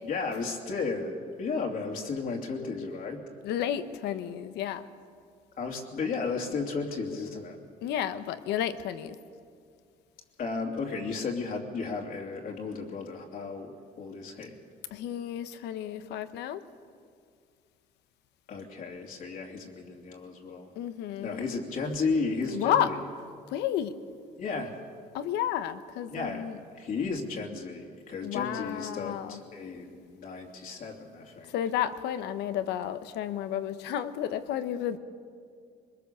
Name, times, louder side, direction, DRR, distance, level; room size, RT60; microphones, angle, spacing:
voice 1, 0.0-3.2 5.6-7.6 10.4-14.6 18.5-20.7 21.2-23.0 24.4-24.8 26.1-26.5 26.7-31.5, left 4 dB, 55° left, 0 dB, 2.8 m, -34 dB
voice 2, 3.4-4.8 7.8-9.2 14.9-16.6 20.8-21.5 22.5-22.9 23.5-24.0 25.1-26.6 28.2-29.4 31.5-35.0, left 10 dB, 85° left, 11 dB, 1.2 m, -31 dB
22.5 x 21.5 x 7.0 m, 2.2 s
cardioid pair, 110°, 17 cm